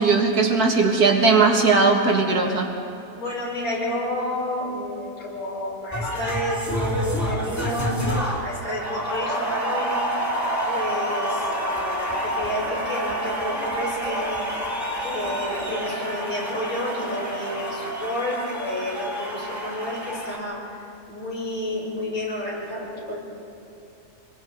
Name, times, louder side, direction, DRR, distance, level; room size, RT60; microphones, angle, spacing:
voice 1, 0.0-2.7, right 4 dB, 75° right, 1 dB, 2.4 m, -18 dB
voice 2, 3.2-10.1 10.6-14.5 15.0-20.8 21.1-23.2, left 1 dB, 65° left, -6 dB, 6.4 m, -30 dB
sound 1, 5.9-20.4, equal, 10° left, 2.7 m, -28 dB
26.0 x 22.0 x 4.7 m, 2.6 s
omnidirectional pair, 1.6 m